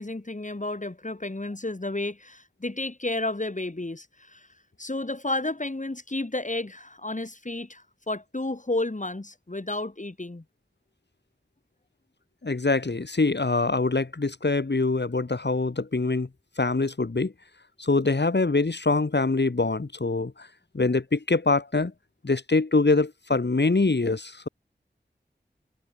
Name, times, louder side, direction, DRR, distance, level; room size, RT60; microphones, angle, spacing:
voice 1, 0.0-4.5 4.8-10.4, left 2 dB, 45° left, 4.4 m, -32 dB
voice 2, 12.4-16.3 16.6-17.3 17.8-20.5 20.7-21.9 22.2-24.5, left 3 dB, 70° left, 3.5 m, -24 dB
wide cardioid pair, 45°, 18 cm